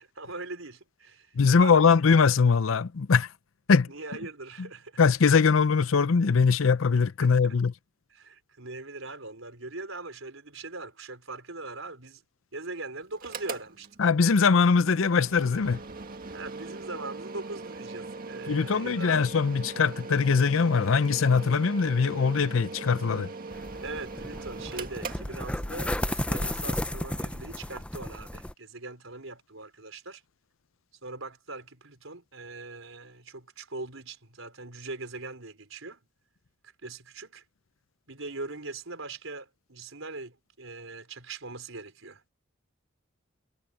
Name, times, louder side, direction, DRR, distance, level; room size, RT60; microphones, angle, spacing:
voice 1, 0.0-1.9 3.9-5.0 7.2-7.5 8.1-12.2 12.5-14.1 16.3-19.2 23.8-30.2 31.0-36.0 36.8-37.4 38.1-42.3, right 3 dB, 75° right, 4.7 m, -41 dB
voice 2, 1.4-3.3 3.7-3.9 5.0-7.7 14.0-15.8 18.5-23.3, left 5 dB, 75° left, 0.6 m, -22 dB
Mechanical fan, 13.1-26.0, right 3 dB, 45° right, 1.9 m, -41 dB
sound 1, 23.5-28.5, left 1 dB, 5° left, 0.6 m, -33 dB
head